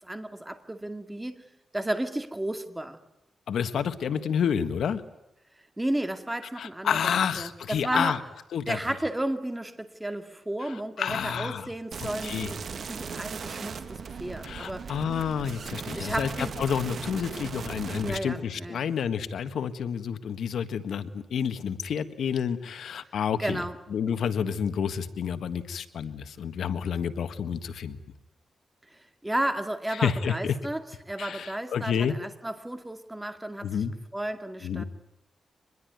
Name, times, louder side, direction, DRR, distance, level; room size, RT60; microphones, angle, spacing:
voice 1, 0.0-1.4 1.7-3.0 5.8-8.2 8.7-12.6 12.9-14.9 15.9-16.5 18.0-18.9 23.4-23.8 28.9-33.7 34.1-34.8, right 1 dB, 10° right, 7 dB, 2.2 m, -33 dB
voice 2, 3.5-5.0 6.6-8.2 8.5-8.8 10.6-11.7 12.0-12.5 14.4-23.6 23.9-28.0 29.9-30.5 31.2-32.1 33.6-33.9 34.6-34.8, left 7 dB, 85° left, 10 dB, 1.6 m, -29 dB
sound 1, 11.9-18.2, right 6 dB, 60° right, 1.9 m, -38 dB
25.0 x 21.0 x 9.4 m, 0.87 s
wide cardioid pair, 130°, 0 cm